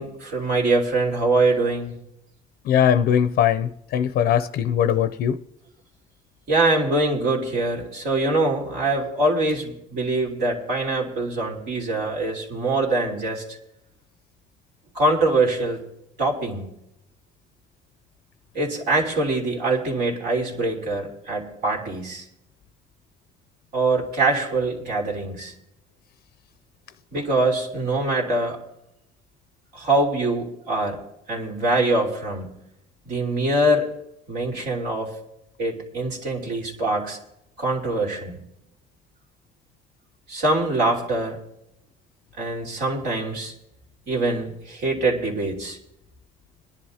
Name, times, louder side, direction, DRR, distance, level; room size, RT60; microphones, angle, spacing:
voice 1, 0.0-1.9 6.5-13.4 14.9-15.8 16.2-16.7 18.5-22.2 23.7-25.5 27.1-28.6 29.7-31.0 31.3-32.5 33.0-33.9 34.3-35.1 35.6-37.2 37.6-38.4 40.3-41.4 42.4-43.5 44.1-45.8, right 2 dB, 75° right, 3.4 m, -23 dB
voice 2, 2.6-5.4, left 9 dB, 70° left, 0.6 m, -20 dB
22.5 x 11.0 x 2.8 m
cardioid pair, 110°, 17 cm